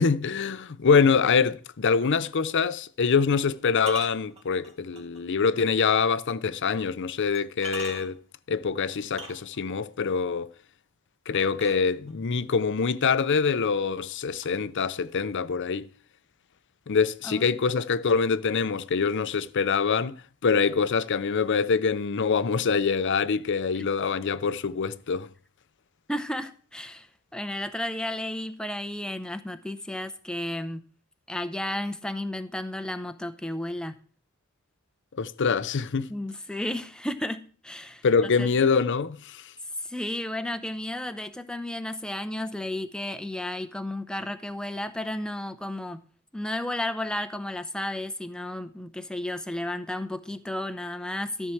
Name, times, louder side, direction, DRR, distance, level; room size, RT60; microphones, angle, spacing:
voice 1, 0.0-8.2 8.5-10.5 11.3-15.9 16.9-20.2 20.4-25.3 35.2-36.1 38.0-39.4, left 5 dB, 55° left, 0.6 m, -25 dB
sound 1, 2.0-2.2 3.8-5.2 5.7-5.8 6.7-6.8 7.3-8.3 9.0-9.8 11.3-12.3 13.2-13.3 13.7-14.1 14.4-15.4, right 3 dB, 30° right, 1.9 m, -42 dB
voice 2, 26.1-30.8 31.3-33.9 36.1-38.0 38.4-38.5 39.8-46.0 46.3-51.5, left 1 dB, 5° left, 0.7 m, -33 dB
13.0 x 4.7 x 7.1 m
head